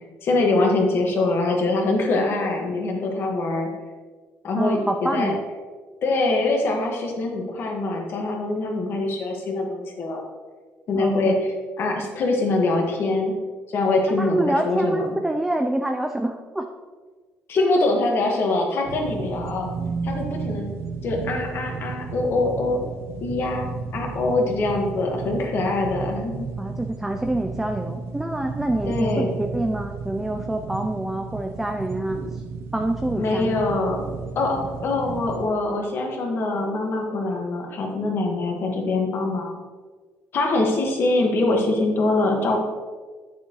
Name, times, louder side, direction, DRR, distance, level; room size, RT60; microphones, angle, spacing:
voice 1, 0.2-3.7 4.4-5.3 6.0-10.2 10.9-11.5 11.8-13.3 13.7-15.1 17.5-19.7 20.0-20.7 21.0-22.8 23.2-23.7 23.9-26.5 28.9-29.3 33.2-34.0 34.3-39.5 40.3-42.6, left 2 dB, 50° left, 1 dB, 1.7 m, -23 dB
voice 2, 4.5-5.4 11.0-11.3 14.2-16.7 17.6-17.8 26.6-32.4 32.7-33.6, right 1 dB, 5° right, 4 dB, 0.4 m, -26 dB
sound 1, 18.9-35.5, right 5 dB, 55° right, 0.7 m, -33 dB
8.9 x 6.8 x 3.1 m, 1.4 s
cardioid pair, 120°, 5 cm